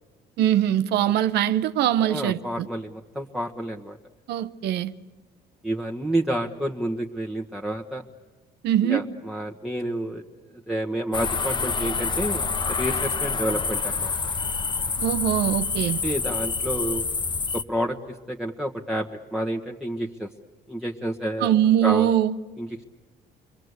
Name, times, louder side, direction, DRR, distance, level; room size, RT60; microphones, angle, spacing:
voice 1, 0.4-2.7 4.3-4.9 8.6-9.0 15.0-16.0 21.4-22.4, right 11 dB, 80° right, 1.0 m, -22 dB
voice 2, 2.0-4.0 5.6-8.0 8.9-10.2 10.7-12.4 12.7-14.1 16.0-17.0 17.5-20.3 20.7-21.5 21.8-22.1 22.6-22.8, right 1 dB, 5° right, 1.4 m, -29 dB
sound 1, 11.1-17.6, left 4 dB, 30° left, 1.1 m, -27 dB
29.0 x 22.5 x 8.2 m
cardioid pair, 110°, 17 cm